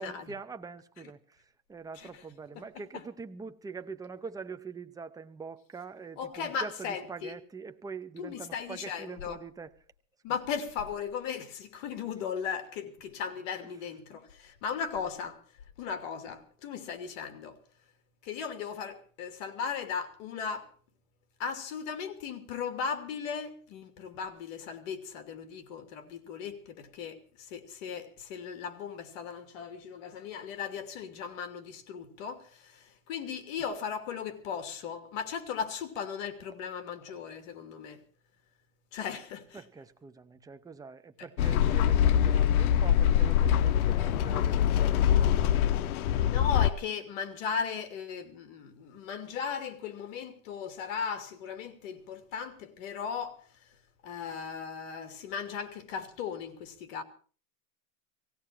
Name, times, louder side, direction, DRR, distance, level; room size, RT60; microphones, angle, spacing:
voice 1, 0.0-9.7 13.7-13.8 39.5-46.2, right 5 dB, 10° right, 0.7 m, -44 dB
voice 2, 6.2-7.3 8.2-9.4 10.2-15.4 15.8-17.6 18.2-20.7 21.4-38.0 38.9-39.6 46.2-53.4 54.0-57.0, left 6 dB, 60° left, 2.7 m, -37 dB
sound 1, 41.4-46.7, left 10 dB, 80° left, 0.8 m, -24 dB
18.5 x 16.5 x 4.6 m
supercardioid pair, 140°, 42 cm